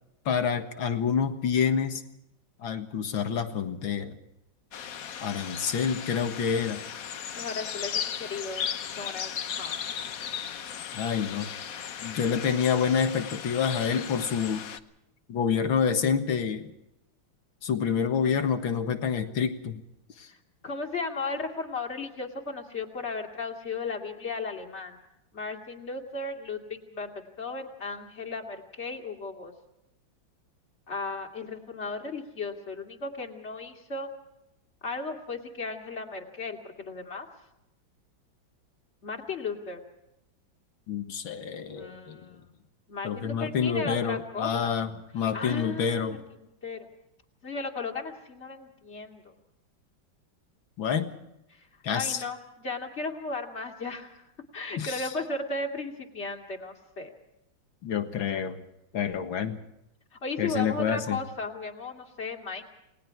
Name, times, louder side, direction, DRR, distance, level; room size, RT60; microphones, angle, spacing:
voice 1, 0.3-2.0 2.6-4.2 5.2-6.8 10.9-11.5 12.0-14.7 15.3-16.7 17.6-19.8 20.2-20.3 40.9-42.2 43.0-46.2 50.8-51.1 51.8-52.2 54.8-55.1 57.8-58.6 58.9-59.6 60.4-61.2, left 7 dB, 80° left, 7 dB, 2.4 m, -28 dB
sound 1, 4.7-14.8, left 8 dB, 55° left, 1.2 m, -36 dB
voice 2, 7.4-10.1 18.2-18.4 20.3-20.4 20.6-25.0 25.3-29.5 30.9-34.1 34.8-37.3 39.0-39.8 41.7-42.5 42.9-44.7 45.3-46.9 47.4-49.3 51.5-51.7 51.9-54.2 54.5-57.1 60.2-62.6, left 3 dB, 35° left, 2 dB, 2.9 m, -36 dB
29.5 x 20.0 x 4.6 m, 0.86 s
omnidirectional pair, 2.1 m